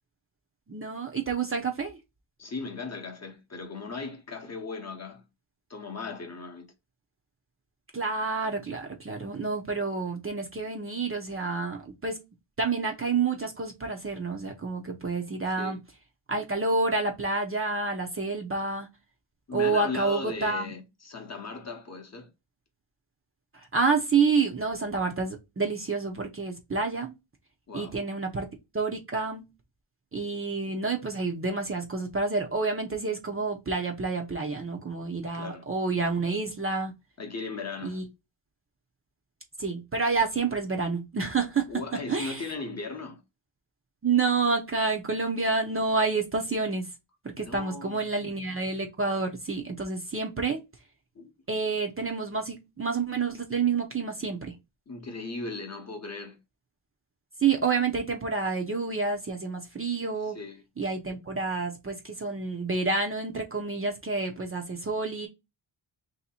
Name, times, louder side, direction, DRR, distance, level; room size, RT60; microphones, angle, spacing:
voice 1, 0.7-2.0 7.9-12.2 12.6-15.8 16.3-18.9 19.5-20.7 23.7-27.1 27.7-28.5 28.7-29.5 30.1-36.9 37.8-38.0 39.6-41.7 42.1-42.4 44.0-46.9 47.2-50.6 51.5-54.5 57.4-60.4 60.8-65.3, right 4 dB, 30° right, 0.6 m, -28 dB
voice 2, 2.4-5.3 5.7-6.7 15.5-15.8 19.5-22.3 27.7-28.0 35.3-35.6 37.2-38.1 41.7-43.2 47.4-48.0 51.1-51.3 54.9-56.4 60.2-60.6, left 4 dB, 35° left, 0.8 m, -37 dB
3.2 x 2.8 x 4.3 m
wide cardioid pair, 180°, 48 cm